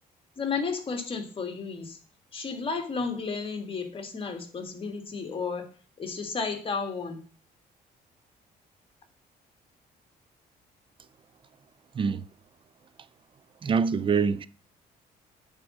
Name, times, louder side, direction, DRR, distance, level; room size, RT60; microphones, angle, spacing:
voice 1, 0.4-2.0 2.3-5.7 6.0-7.2, left 5 dB, 35° left, 1.6 m, -32 dB
voice 2, 13.6-14.5, right 5 dB, 30° right, 0.5 m, -25 dB
8.1 x 3.8 x 6.2 m
cardioid pair, 115°, 16 cm